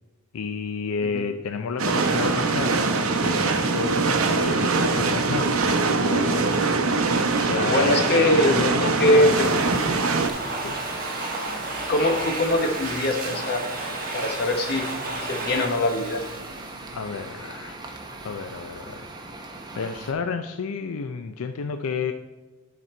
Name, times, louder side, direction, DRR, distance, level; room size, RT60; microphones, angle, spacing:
voice 1, 0.3-6.5 7.4-9.5 10.6-10.8 16.9-17.8 18.2-19.1 19.7-22.1, left 5 dB, 85° left, 8 dB, 0.4 m, -31 dB
sound 1, 1.8-10.3, right 3 dB, 75° right, 0.8 m, -23 dB
voice 2, 7.7-9.5 11.9-13.6 14.1-14.9 15.3-16.2, left 1 dB, 50° left, 4 dB, 1.1 m, -22 dB
sound 2, 8.5-20.1, right 2 dB, 20° right, 0.8 m, -39 dB
Domestic sounds home sounds, 8.9-17.4, right 2 dB, 40° right, 1.4 m, -33 dB
12.0 x 4.2 x 4.3 m, 1.2 s
head